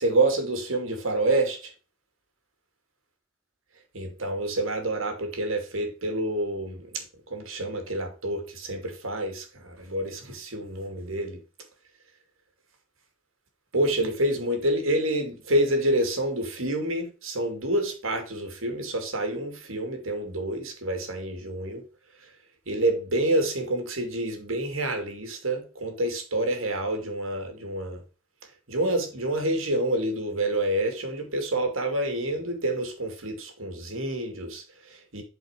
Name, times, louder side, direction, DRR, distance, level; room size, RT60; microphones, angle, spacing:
voice 1, 0.0-1.7 3.9-11.4 13.7-21.8 22.7-28.0 28.7-35.2, right 1 dB, 80° right, 2.6 m, -28 dB
8.2 x 5.0 x 4.9 m
head